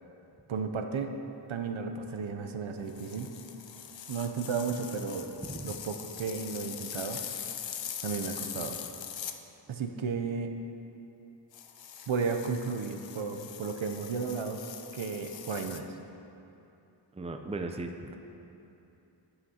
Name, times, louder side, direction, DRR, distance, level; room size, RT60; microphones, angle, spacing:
voice 1, 0.5-1.1 1.5-3.3 4.1-5.3 5.6-7.2 8.0-8.8 9.7-10.5 12.1-14.6 14.9-15.9, right 5 dB, 75° right, 6 dB, 0.6 m, -33 dB
sound 1, 2.9-9.4 11.5-15.8, left 8 dB, 70° left, 0.5 m, -42 dB
voice 2, 17.1-18.2, right 2 dB, 15° right, 5 dB, 0.5 m, -37 dB
12.5 x 5.8 x 2.8 m, 2.9 s
wide cardioid pair, 45°, 48 cm